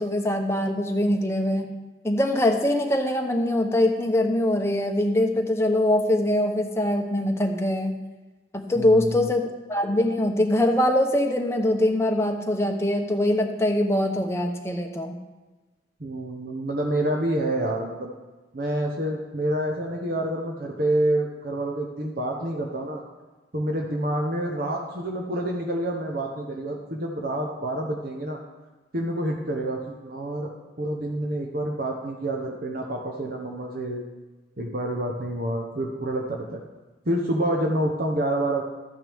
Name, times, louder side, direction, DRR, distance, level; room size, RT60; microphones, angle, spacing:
voice 1, 0.0-1.7 2.0-7.9 8.5-15.1, left 1 dB, 15° left, 3 dB, 0.9 m, -23 dB
voice 2, 8.7-9.3 16.0-18.1 18.5-23.0 23.5-28.4 28.9-30.5 30.8-34.0 34.6-36.6 37.1-38.6, right 1 dB, 55° right, 1 dB, 1.0 m, -28 dB
13.5 x 9.2 x 3.6 m, 1.2 s
head